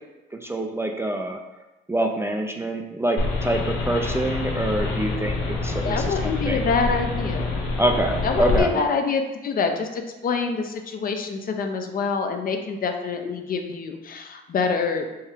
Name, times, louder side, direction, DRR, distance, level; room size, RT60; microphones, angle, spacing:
voice 1, 0.3-1.4 1.9-6.6 7.8-8.8, right 1 dB, 15° right, 3 dB, 0.3 m, -25 dB
sound 1, 3.2-8.6, left 3 dB, 85° left, 0.9 m, -26 dB
voice 2, 5.8-7.4 8.2-15.1, left 5 dB, 45° left, 5 dB, 0.5 m, -26 dB
4.5 x 2.3 x 3.4 m, 1.0 s
cardioid pair, 90°, 20 cm